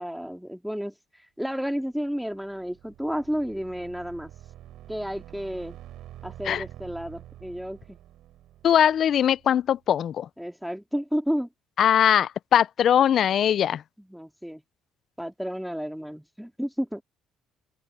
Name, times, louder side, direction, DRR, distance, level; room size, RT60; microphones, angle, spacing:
voice 1, 0.0-4.3 4.9-5.8 6.2-8.0 10.4-11.5 14.0-14.6 15.2-17.0, equal, ahead, 2.3 m, -32 dB
sound 1, 2.1-9.8, right 13 dB, 65° right, 5.4 m, -47 dB
voice 2, 8.6-10.3 11.8-13.8, left 9 dB, 45° left, 0.4 m, -21 dB
open air
cardioid pair, 140°, 0 cm